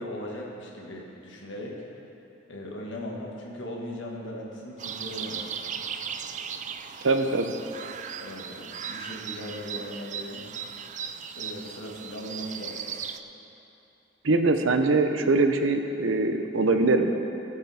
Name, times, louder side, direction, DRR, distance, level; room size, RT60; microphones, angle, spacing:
voice 1, 0.0-1.8 2.5-5.5 8.2-10.5 11.4-12.9, equal, 70° left, -2 dB, 1.9 m, -38 dB
sound 1, 4.8-13.2, right 7 dB, 40° right, 0.4 m, -37 dB
voice 2, 7.0-7.5 14.2-17.2, right 3 dB, 85° right, 6 dB, 0.8 m, -23 dB
19.0 x 7.3 x 4.3 m, 2.9 s
head